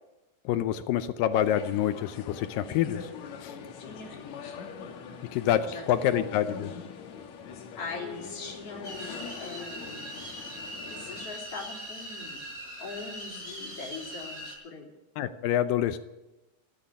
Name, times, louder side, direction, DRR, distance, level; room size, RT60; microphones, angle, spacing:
voice 1, 0.5-3.1 3.4-3.5 5.3-6.7 15.2-16.0, left 11 dB, 80° left, 11 dB, 2.2 m, -27 dB
sound 1, 1.3-11.3, left 6 dB, 60° left, 2.2 m, -43 dB
voice 2, 3.8-4.6 5.7-5.8 7.8-10.3 10.8-12.5 12.8-14.9, left 4 dB, 40° left, -1 dB, 4.1 m, -41 dB
sound 2, 8.8-14.5, equal, 20° right, 7.7 m, -41 dB
14.0 x 10.5 x 9.8 m, 1.0 s
omnidirectional pair, 4.3 m